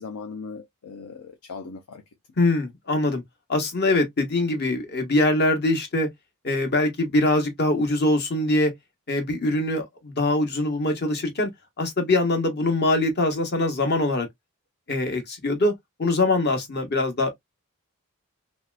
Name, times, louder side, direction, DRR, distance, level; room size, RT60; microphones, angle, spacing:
voice 1, 0.0-2.0, left 4 dB, 80° left, 0.6 m, -38 dB
voice 2, 2.4-3.2 3.5-6.1 6.4-8.7 9.1-11.5 11.8-14.3 14.9-15.7 16.0-17.3, left 2 dB, 45° left, 1.0 m, -23 dB
3.1 x 2.8 x 2.3 m
head